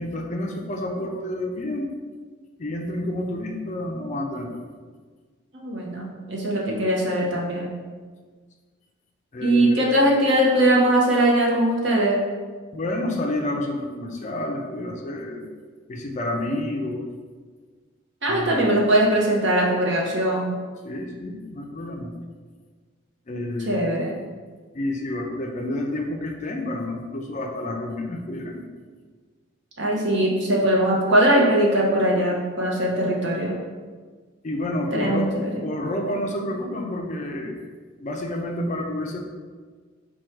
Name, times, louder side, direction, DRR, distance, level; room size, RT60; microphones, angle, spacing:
voice 1, 0.0-1.9 2.6-4.7 9.3-9.8 12.7-15.4 15.9-17.0 18.3-18.8 20.8-22.1 23.3-23.9 24.7-28.6 34.4-35.3 35.6-37.6 38.0-39.2, left 1 dB, 35° left, 2 dB, 0.4 m, -29 dB
voice 2, 5.5-7.7 9.4-12.2 18.2-20.5 23.7-24.2 29.8-33.6 34.9-35.5, right 1 dB, 55° right, -2 dB, 0.9 m, -21 dB
4.5 x 2.3 x 4.4 m, 1.5 s
head